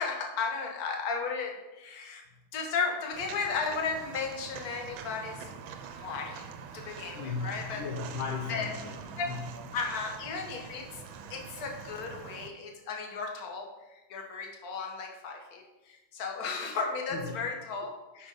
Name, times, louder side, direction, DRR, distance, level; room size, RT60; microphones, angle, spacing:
voice 1, 0.0-2.2 2.5-5.4 6.0-6.4 6.7-7.8 8.5-8.7 9.2-9.3 9.7-11.0 11.3-18.3, left 5 dB, 50° left, 3 dB, 1.5 m, -35 dB
Walk footsteps, 3.1-12.5, right 6 dB, 75° right, 1.5 m, -45 dB
voice 2, 7.1-9.5 17.1-17.4, left 4 dB, 70° left, 1 dB, 1.5 m, -37 dB
8.0 x 5.5 x 5.2 m, 1.0 s
omnidirectional pair, 2.2 m